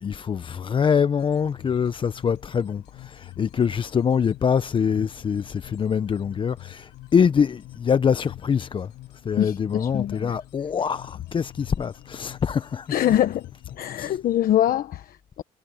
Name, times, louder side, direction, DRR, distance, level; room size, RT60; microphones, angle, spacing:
voice 1, 0.0-8.9 9.2-13.2 14.0-14.2, left 7 dB, 30° left, 0.5 m, -24 dB
sound 1, 1.2-14.2, left 18 dB, 90° left, 6.7 m, -47 dB
voice 2, 9.4-10.3 12.9-13.5 13.7-15.4, left 11 dB, 60° left, 1.1 m, -24 dB
cardioid pair, 110°, 17 cm